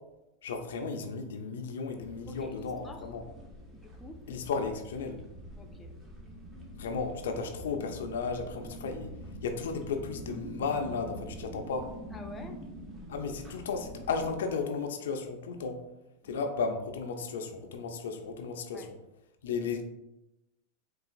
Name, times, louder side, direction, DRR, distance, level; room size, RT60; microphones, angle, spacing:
voice 1, 0.4-3.2 4.3-5.2 6.8-9.1 9.4-11.9 13.1-15.8 16.2-18.9 19.4-19.8, left 4 dB, 75° left, 4 dB, 0.4 m, -34 dB
sound 1, 2.0-14.3, equal, 25° right, 0.8 m, -45 dB
voice 2, 2.3-3.0 3.7-4.2 5.6-5.9 12.1-12.6 16.2-16.3 18.7-18.9, left 2 dB, 15° left, 3 dB, 0.4 m, -48 dB
3.8 x 2.3 x 2.4 m, 0.92 s
hypercardioid pair, 105°, 0 cm